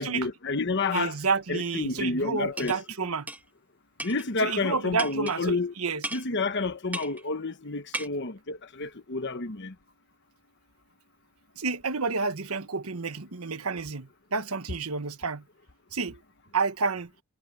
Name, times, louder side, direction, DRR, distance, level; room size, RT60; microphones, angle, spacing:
voice 1, 0.0-1.2 1.5-2.8 4.0-5.7 6.1-9.7, left 3 dB, 55° left, 1.2 m, -29 dB
voice 2, 0.9-3.3 4.4-6.0 11.6-15.4 15.9-16.2 16.5-17.1, right 4 dB, 90° right, 1.3 m, -30 dB
sound 1, 2.6-2.8 3.3-3.4 4.0-4.3 5.0-5.4 6.0-6.3 6.9-7.2 7.9-8.1, right 1 dB, 10° right, 1.1 m, -35 dB
head